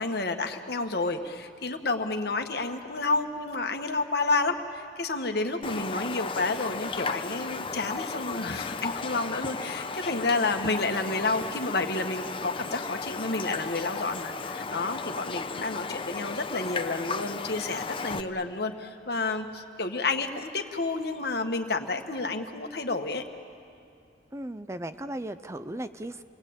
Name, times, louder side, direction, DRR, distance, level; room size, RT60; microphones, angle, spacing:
voice 1, 0.0-23.2, left 3 dB, 65° left, 5 dB, 1.6 m, -30 dB
Raindrop, 5.6-18.2, left 4 dB, 30° left, 0.8 m, -35 dB
voice 2, 24.3-26.2, right 1 dB, 15° right, 11 dB, 0.5 m, -36 dB
29.5 x 21.0 x 8.8 m, 2.4 s
head